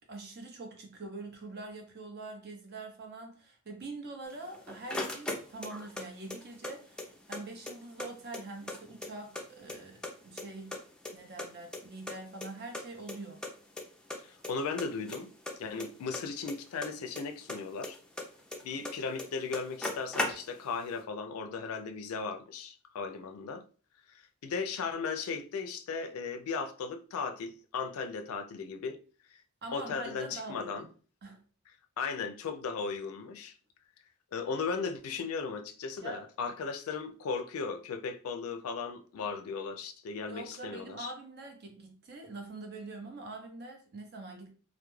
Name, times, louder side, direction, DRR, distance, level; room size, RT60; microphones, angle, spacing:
voice 1, 0.1-10.8 11.1-13.4 29.6-30.9 31.2-31.4 36.0-36.2 40.3-44.5, right 2 dB, 50° right, 0.6 m, -44 dB
sound 1, 4.3-6.0 6.3-7.4 7.7-7.8 8.0-9.4 9.7-10.4 10.7-12.1 12.4-12.5 12.7-12.8 13.1-13.2 13.4-13.8 14.1-14.5 14.8-17.2 17.5-18.9 19.2-19.3 19.5-20.7, left 2 dB, 5° left, 0.4 m, -37 dB
voice 2, 14.2-15.3 15.6-18.0 18.6-23.6 24.1-29.0 29.3-29.4 29.7-30.9 32.0-33.5 34.3-41.1, left 5 dB, 85° left, 0.4 m, -36 dB
2.2 x 2.0 x 3.0 m
head